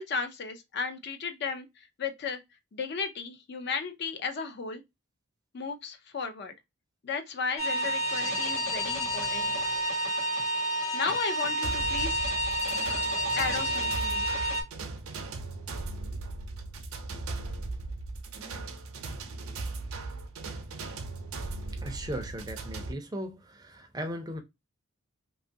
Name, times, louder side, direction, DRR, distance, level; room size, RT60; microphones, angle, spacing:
voice 1, 0.0-2.4 2.7-4.8 5.5-6.5 7.0-9.5 10.9-12.3 13.4-14.5, left 5 dB, 50° left, 0.4 m, -34 dB
sound 1, 7.6-14.6, equal, 75° left, 1.0 m, -29 dB
sound 2, 11.6-22.9, right 3 dB, 85° right, 0.6 m, -38 dB
voice 2, 21.7-24.4, equal, 20° right, 0.4 m, -37 dB
2.8 x 2.3 x 2.6 m
head